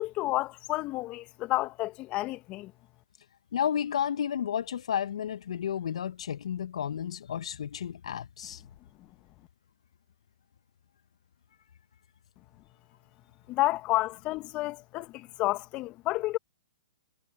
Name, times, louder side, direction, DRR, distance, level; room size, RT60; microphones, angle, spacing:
voice 1, 0.0-2.7 13.5-16.4, left 18 dB, 30° left, 1.5 m, -30 dB
voice 2, 3.5-8.6, left 9 dB, 65° left, 1.8 m, -32 dB
hypercardioid pair, 120°, 4 cm